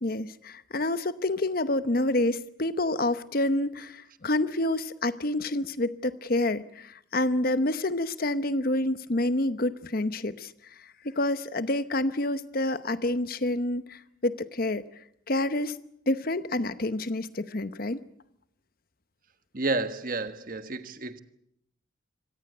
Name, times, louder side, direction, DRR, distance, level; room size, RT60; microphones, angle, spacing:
voice 1, 0.0-10.5 11.0-14.8 15.3-15.8 16.1-18.0, left 1 dB, 50° left, 0.9 m, -28 dB
voice 2, 19.5-21.2, right 3 dB, 45° right, 1.4 m, -30 dB
25.5 x 18.0 x 8.0 m
head